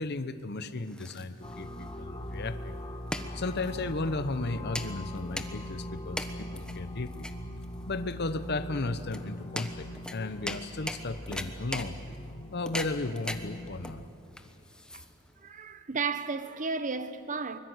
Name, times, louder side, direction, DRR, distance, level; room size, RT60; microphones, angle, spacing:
voice 1, 0.0-2.8 3.3-7.3 7.8-12.0 12.5-14.0, left 2 dB, 50° left, 0.9 m, -35 dB
sound 1, 0.6-15.5, left 1 dB, 5° left, 1.1 m, -41 dB
sound 2, 1.4-14.1, left 1 dB, 25° left, 1.4 m, -43 dB
sound 3, 3.7-11.1 11.9-13.7, equal, 85° left, 1.3 m, -45 dB
voice 2, 15.4-17.6, right 4 dB, 40° right, 1.0 m, -33 dB
24.5 x 21.5 x 8.1 m
head